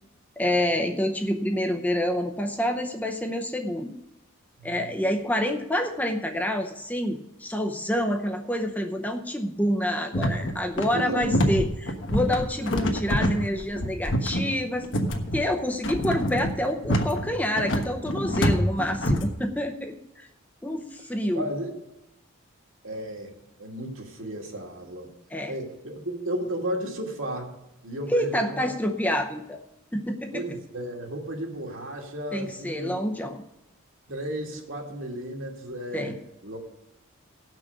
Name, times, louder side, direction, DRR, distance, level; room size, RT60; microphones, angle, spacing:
voice 1, 0.4-3.9 4.6-14.9 15.3-20.3 20.6-21.5 25.3-25.5 28.1-29.6 29.9-30.5 32.3-33.4 35.9-36.2, equal, 5° left, 4 dB, 0.6 m, -27 dB
sound 1, 10.1-19.3, equal, 55° left, 1.3 m, -26 dB
voice 2, 10.9-11.4 12.6-12.7 21.3-21.8 22.8-23.3 23.6-25.1 25.5-28.7 30.3-32.9 34.1-36.2 36.4-36.6, right 1 dB, 70° right, 0 dB, 2.4 m, -34 dB
17.0 x 6.1 x 6.6 m, 0.90 s
head